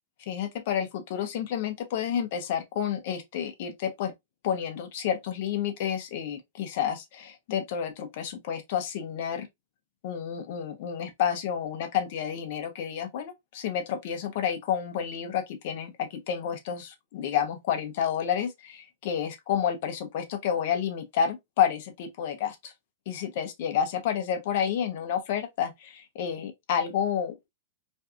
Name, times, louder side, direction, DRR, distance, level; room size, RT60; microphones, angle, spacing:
voice 1, 0.3-4.1 4.4-9.5 10.0-22.7 23.1-27.5, left 8 dB, 60° left, 0.6 m, -30 dB
2.5 x 2.3 x 2.4 m
hypercardioid pair, 110°, 0 cm